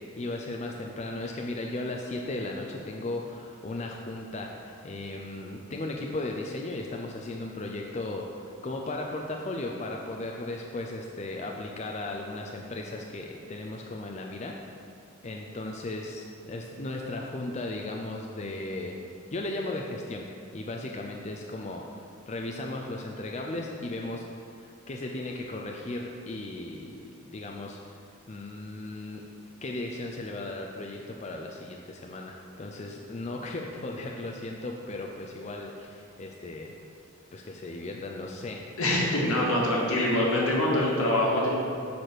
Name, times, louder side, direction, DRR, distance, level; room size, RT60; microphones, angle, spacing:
voice 1, 0.0-14.7 15.2-19.0 19.3-20.3 20.5-22.0 22.3-28.0 28.3-29.2 29.6-36.7 37.3-38.6, left 2 dB, 30° left, 1 dB, 0.4 m, -36 dB
voice 2, 38.8-41.5, left 1 dB, 90° left, -4 dB, 1.9 m, -24 dB
6.8 x 4.9 x 6.0 m, 2.5 s
head